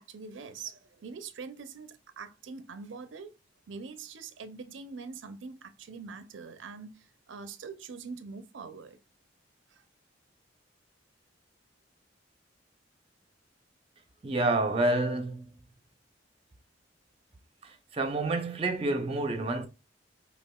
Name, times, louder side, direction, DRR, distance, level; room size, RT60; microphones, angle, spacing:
voice 1, 0.0-3.4 3.7-9.0 9.7-9.8, right 5 dB, 80° right, 0.5 m, -44 dB
voice 2, 14.2-15.5 17.6-19.7, right 2 dB, 30° right, 0.6 m, -28 dB
5.4 x 2.3 x 2.2 m
head